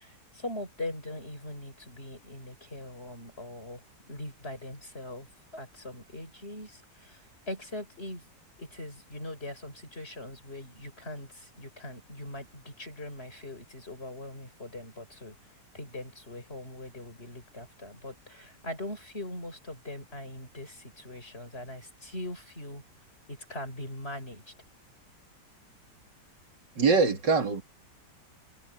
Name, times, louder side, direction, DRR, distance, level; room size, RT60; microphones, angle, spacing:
voice 1, 0.0-3.8 4.1-5.3 5.5-7.2 7.5-8.2 8.6-15.4 15.7-22.8 23.3-24.4, left 1 dB, 35° left, 6.9 m, -41 dB
voice 2, 26.8-27.6, right 4 dB, 85° right, 3.6 m, -23 dB
omnidirectional pair, 1.9 m